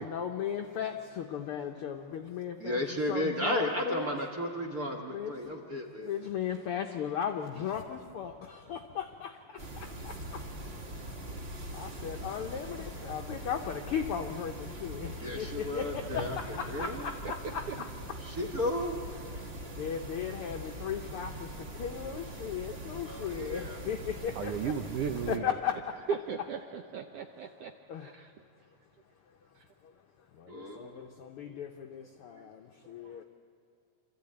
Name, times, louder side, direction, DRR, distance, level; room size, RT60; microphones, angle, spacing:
voice 1, 0.0-2.8 3.1-4.1 5.1-5.7 6.0-10.5 11.0-11.1 11.7-18.2 19.3-24.7 25.3-26.0 27.9-28.1 29.8-29.9 30.3-33.2, left 8 dB, 75° left, 4 dB, 1.3 m, -37 dB
voice 2, 2.6-6.1 15.2-17.1 18.2-19.0 23.0-23.8 30.5-31.1, left 1 dB, 50° right, 1 dB, 1.1 m, -34 dB
sound 1, 9.6-25.4, right 1 dB, 90° right, 0.5 m, -42 dB
sound 2, 16.1-18.3 18.6-18.7, left 5 dB, 40° left, 1.3 m, -47 dB
voice 3, 24.4-25.5 26.1-27.7 28.0-28.3 31.0-31.3 32.4-32.5 32.8-32.9, right 7 dB, 70° right, 5 dB, 1.5 m, -36 dB
26.0 x 14.0 x 8.7 m, 2.4 s
omnidirectional pair, 3.5 m